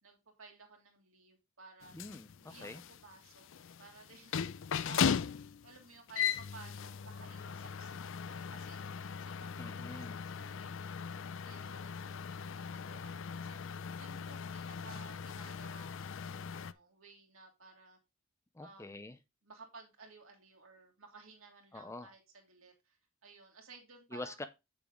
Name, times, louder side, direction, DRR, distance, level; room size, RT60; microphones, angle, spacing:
voice 1, 0.0-1.9 2.4-3.5 3.8-8.8 9.2-13.6 14.0-18.0 18.6-19.1 19.4-24.3, right 4 dB, 70° right, 2 dB, 2.8 m, -57 dB
sound 1, 1.8-16.7, left 7 dB, 60° left, 0.4 m, -39 dB
voice 2, 1.9-2.8 9.6-10.2 18.5-19.2 21.7-22.1 24.1-24.5, left 2 dB, 15° left, 10 dB, 0.5 m, -45 dB
8.1 x 7.0 x 3.7 m, 0.24 s
head